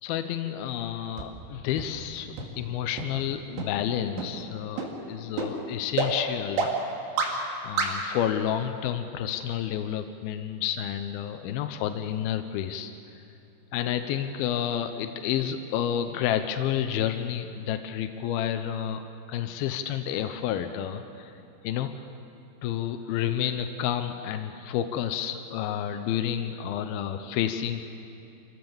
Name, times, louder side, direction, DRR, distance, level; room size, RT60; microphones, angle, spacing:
voice 1, 0.0-6.7 7.6-12.9 13.7-19.0 19.3-21.3 21.6-21.9 22.6-27.8, left 10 dB, 85° left, 8 dB, 2.2 m, -30 dB
sound 1, 1.2-1.3 1.8-1.9 2.4-2.5 3.0-3.1 3.6-3.7 4.2-4.3 4.8-4.9 5.4-5.5 6.0-6.1 6.6-6.7 7.2-7.3 7.8-7.9, right 5 dB, 70° right, 4.2 m, -27 dB
26.0 x 15.5 x 7.2 m, 2.7 s
omnidirectional pair, 5.2 m